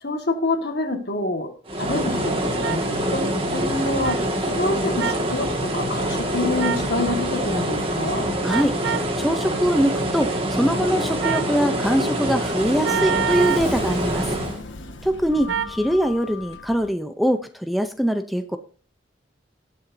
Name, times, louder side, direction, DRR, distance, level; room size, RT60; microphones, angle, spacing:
voice 1, 0.0-1.5 1.8-3.3 3.5-8.3, left 2 dB, 60° left, 5 dB, 1.7 m, -27 dB
sound 1, 1.7-14.6, right 1 dB, 30° right, 1.9 m, -25 dB
sound 2, 2.6-2.8 4.0-4.2 5.0-5.2 6.6-6.9 8.5-9.1 11.2-11.5 12.8-13.7 15.5-15.8, right 9 dB, 75° right, 0.6 m, -26 dB
voice 2, 8.4-14.3 15.0-18.6, equal, ahead, 8 dB, 0.6 m, -23 dB
Sliding door, 12.2-16.9, left 3 dB, 80° left, 1.4 m, -38 dB
19.0 x 6.9 x 2.7 m, 0.40 s
head